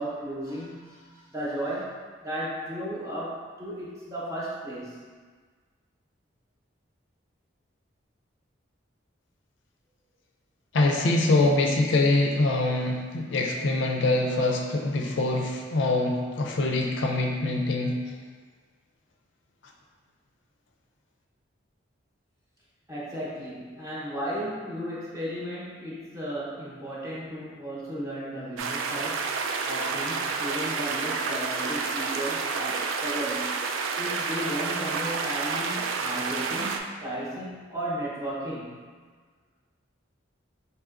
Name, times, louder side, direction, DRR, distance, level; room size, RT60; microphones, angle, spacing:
voice 1, 0.0-5.1 22.9-29.3 29.6-33.6 34.0-38.7, equal, 15° right, -7 dB, 0.8 m, -35 dB
voice 2, 10.7-18.0, left 2 dB, 65° left, 1 dB, 0.4 m, -24 dB
sound 1, 28.6-36.8, right 4 dB, 80° right, 0.3 m, -29 dB
4.7 x 2.9 x 2.4 m, 1.5 s
head